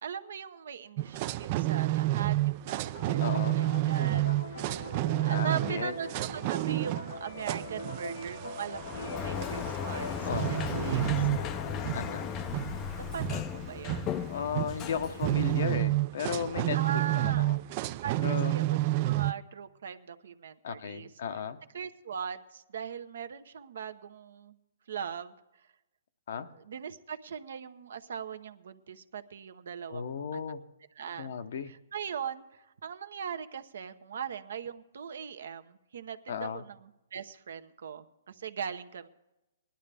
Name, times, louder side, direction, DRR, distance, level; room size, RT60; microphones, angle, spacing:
voice 1, 0.0-3.3 3.5-4.8 5.2-11.3 13.0-14.1 16.7-17.5 18.0-21.1 21.7-24.6 24.9-25.3 26.5-30.5 31.0-31.3 31.6-39.1, right 7 dB, 70° right, 9 dB, 0.9 m, -40 dB
sound 1, 1.0-19.3, right 17 dB, 35° right, 0.4 m, -30 dB
sound 2, 2.9-12.2, left 1 dB, 75° left, 1.9 m, -42 dB
voice 2, 3.2-3.6 5.3-5.9 10.2-10.5 11.9-12.3 14.3-16.8 17.1-17.6 18.2-18.5 20.6-21.6 26.3-26.5 29.9-30.6 31.2-31.7 36.3-36.6, left 7 dB, 60° left, 10 dB, 0.9 m, -35 dB
Sliding door, 8.7-15.9, left 9 dB, 25° left, 0.5 m, -36 dB
19.5 x 11.5 x 3.4 m, 0.95 s
hypercardioid pair, 150°, 0 cm